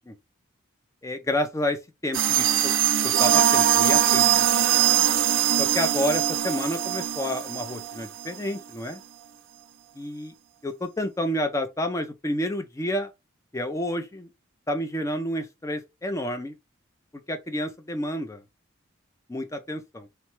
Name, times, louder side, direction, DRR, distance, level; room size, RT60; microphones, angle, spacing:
voice 1, 1.0-2.7 3.0-4.4 5.6-9.0 9.9-10.3 10.6-13.1 13.5-14.3 14.7-16.5 17.3-18.4 19.3-20.1, left 1 dB, 15° left, 0.4 m, -29 dB
sound 1, 2.1-8.4, right 11 dB, 65° right, 0.4 m, -22 dB
3.0 x 2.2 x 3.0 m
head